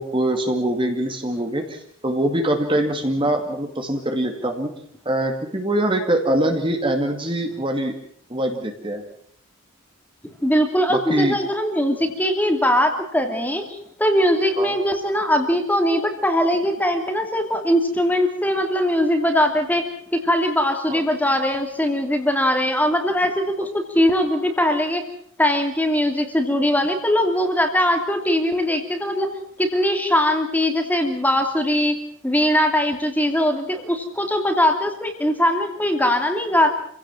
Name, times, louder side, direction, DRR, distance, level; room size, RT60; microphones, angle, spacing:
voice 1, 0.0-4.7 5.1-7.9 8.3-9.0 10.9-11.4 14.6-14.7 20.9-21.0, right 1 dB, 25° right, 4 dB, 2.3 m, -23 dB
voice 2, 10.4-19.8 20.1-25.0 25.4-29.3 29.6-32.0 32.2-36.7, left 1 dB, 10° left, 5 dB, 2.8 m, -21 dB
27.5 x 17.0 x 7.4 m, 0.64 s
head